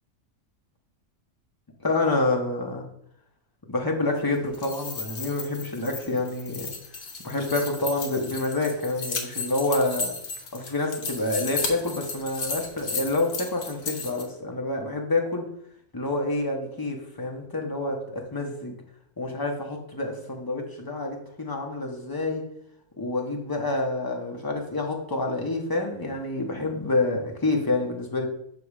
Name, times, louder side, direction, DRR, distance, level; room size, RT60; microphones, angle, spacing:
voice 1, 1.8-2.8 3.7-6.7 7.2-10.1 10.5-15.5 15.9-18.8 19.2-22.5 23.0-28.3, left 2 dB, 20° left, 0.7 m, -28 dB
sound 1, 4.4-14.2, left 4 dB, 45° left, 0.9 m, -34 dB
6.9 x 3.1 x 4.8 m
omnidirectional pair, 1.4 m